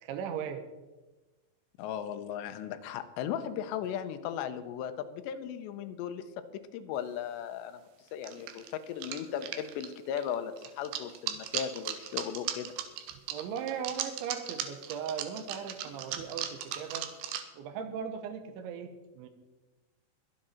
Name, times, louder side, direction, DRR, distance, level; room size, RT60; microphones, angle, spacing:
voice 1, 0.0-0.7 13.3-17.1 17.5-19.3, right 7 dB, 90° right, 7 dB, 3.4 m, -38 dB
voice 2, 1.8-6.4 6.7-7.8 8.1-12.7, left 9 dB, 80° left, 9 dB, 2.9 m, -37 dB
sound 1, 7.1-7.2 8.2-17.4, right 10 dB, 75° right, 2.8 m, -37 dB
22.5 x 7.8 x 4.3 m, 1.2 s
omnidirectional pair, 5.2 m